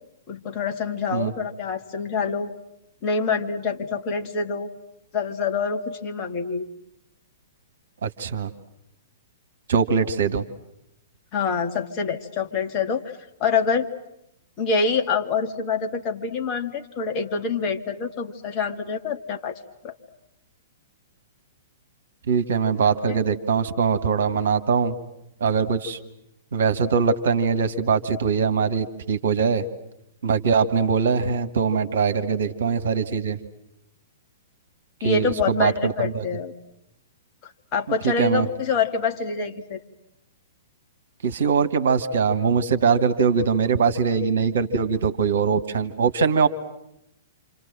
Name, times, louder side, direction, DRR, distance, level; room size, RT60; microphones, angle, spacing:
voice 1, 0.3-2.5 3.0-4.7 5.1-6.7 11.3-13.0 13.4-13.9 14.6-19.6 19.8-19.9 23.1-23.2 35.0-36.5 37.7-39.8, left 5 dB, 30° left, 4 dB, 2.2 m, -26 dB
voice 2, 8.0-8.5 9.7-10.4 22.3-25.0 25.4-26.0 26.5-29.6 30.2-33.4 35.0-36.2 38.0-38.5 41.2-46.5, right 6 dB, 60° right, 10 dB, 1.7 m, -22 dB
28.0 x 28.0 x 7.7 m, 0.82 s
figure-of-eight pair, 110°, 0 cm